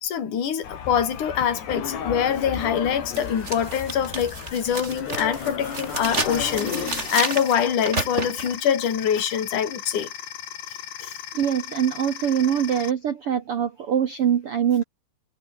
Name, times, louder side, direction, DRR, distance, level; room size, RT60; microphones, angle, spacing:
voice 1, 0.0-10.1 11.0-11.1, left 8 dB, 50° left, 4.6 m, -24 dB
sound 1, 0.6-7.1, left 7 dB, 85° left, 6.1 m, -33 dB
sound 2, 2.5-2.6 3.1-8.6, right 3 dB, 15° right, 3.4 m, -31 dB
sound 3, 6.0-12.9, left 11 dB, 65° left, 3.5 m, -37 dB
voice 2, 11.3-14.8, right 9 dB, 85° right, 1.2 m, -23 dB
omnidirectional pair, 4.7 m